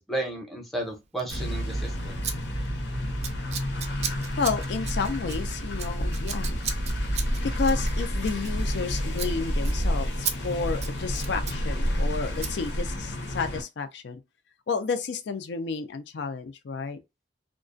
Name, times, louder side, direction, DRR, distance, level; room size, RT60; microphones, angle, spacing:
voice 1, 0.0-2.1, right 2 dB, ahead, 0.6 m, -33 dB
Scissors, 1.2-1.5 2.2-2.3 2.6-2.9 3.2-8.9 9.1-9.3 9.6-9.8 10.2-10.4 10.7-11.6 12.4-12.5, right 7 dB, 40° right, 0.4 m, -35 dB
sound 1, 1.3-13.6, equal, 85° left, 0.8 m, -29 dB
voice 2, 4.4-6.5 7.6-14.2 14.7-17.0, left 5 dB, 70° left, 0.4 m, -31 dB
2.3 x 2.2 x 2.5 m
head